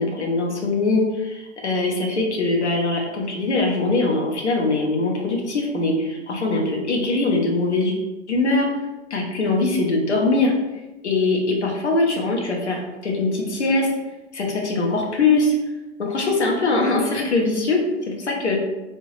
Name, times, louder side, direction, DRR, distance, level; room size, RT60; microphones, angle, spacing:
voice 1, 0.0-7.9 8.3-8.7 9.1-10.5 11.0-13.9 14.3-15.5 16.0-18.6, left 3 dB, 90° left, -1 dB, 0.9 m, -22 dB
3.4 x 2.6 x 3.1 m, 1.1 s
figure-of-eight pair, 95°, 33 cm